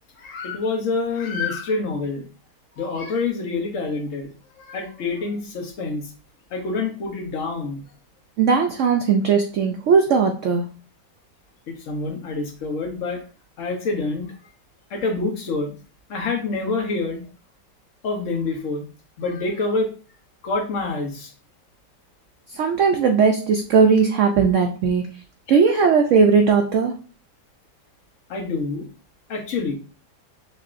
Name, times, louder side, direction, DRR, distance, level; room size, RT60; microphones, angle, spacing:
voice 1, 0.2-2.2 2.8-4.3 4.6-6.1 6.5-7.8 11.7-13.2 13.6-14.3 14.9-15.7 16.1-17.2 18.0-18.9 19.2-19.9 20.4-21.3 25.5-25.8 28.3-28.9 29.3-29.8, left 3 dB, 50° left, 2 dB, 1.2 m, -26 dB
voice 2, 8.4-10.7 22.5-25.0 25.5-26.9, right 5 dB, 85° right, 4 dB, 0.6 m, -18 dB
6.7 x 2.8 x 2.5 m, 0.36 s
omnidirectional pair, 1.9 m